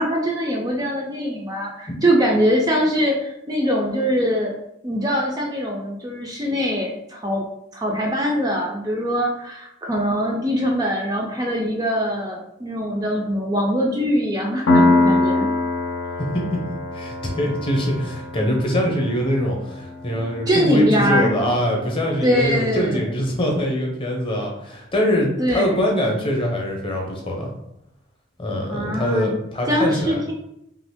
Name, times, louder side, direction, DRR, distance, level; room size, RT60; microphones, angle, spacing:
voice 1, 0.0-4.5 4.8-7.5 7.7-15.5 20.5-21.3 22.2-23.2 25.4-25.9 28.7-29.3 29.7-30.3, equal, 20° right, -1 dB, 0.3 m, -22 dB
Piano, 14.7-22.1, left 2 dB, 80° left, 0.6 m, -24 dB
voice 2, 16.2-16.6 16.9-27.5 28.4-30.2, equal, 25° left, 0 dB, 0.6 m, -23 dB
2.8 x 2.5 x 3.4 m, 0.79 s
head